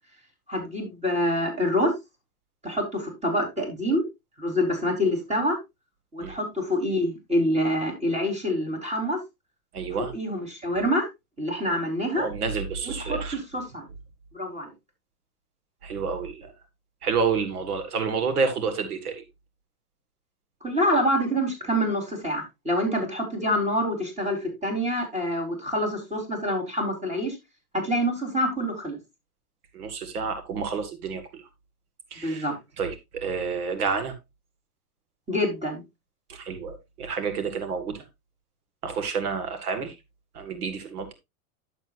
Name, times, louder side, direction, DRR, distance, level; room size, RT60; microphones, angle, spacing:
voice 1, 0.5-1.9 2.6-4.0 4.4-5.6 6.1-9.2 10.0-11.1 11.4-12.3 12.8-13.9 14.3-14.7 20.6-27.4 27.8-29.0 32.2-32.5 35.3-35.8, equal, 15° right, 4.3 m, -26 dB
voice 2, 9.7-10.1 12.2-13.4 15.8-16.5 17.0-19.2 29.7-31.4 32.1-32.5 32.8-34.1 36.3-38.0 38.8-40.0 40.3-41.1, right 5 dB, 85° right, 2.0 m, -29 dB
11.5 x 7.2 x 2.6 m
hypercardioid pair, 120°, 44 cm